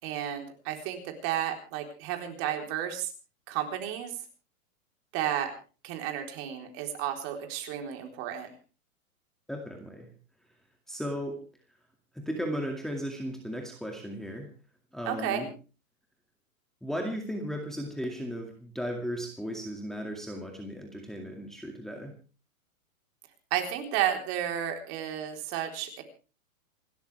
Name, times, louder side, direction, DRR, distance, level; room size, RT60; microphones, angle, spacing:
voice 1, 0.0-3.1 3.5-4.1 5.1-5.5 5.8-8.5 15.1-15.5 23.5-26.0, right 10 dB, 35° right, 4 dB, 4.0 m, -32 dB
voice 2, 9.5-10.1 10.9-11.4 12.1-14.5 14.9-15.5 16.8-22.1, equal, ahead, 1 dB, 2.2 m, -35 dB
28.0 x 13.0 x 3.4 m, 0.36 s
hypercardioid pair, 145°, 42 cm